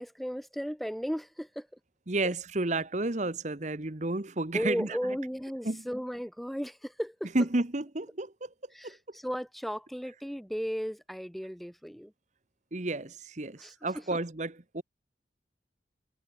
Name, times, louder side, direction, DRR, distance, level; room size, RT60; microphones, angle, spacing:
voice 1, 0.0-1.7 2.2-2.3 4.5-7.3 8.7-12.1 13.6-13.7, equal, ahead, 1.1 m, -35 dB
voice 2, 2.1-5.0 5.6-5.8 7.3-8.5 8.8-9.0 12.7-14.8, right 2 dB, 40° right, 1.3 m, -31 dB
head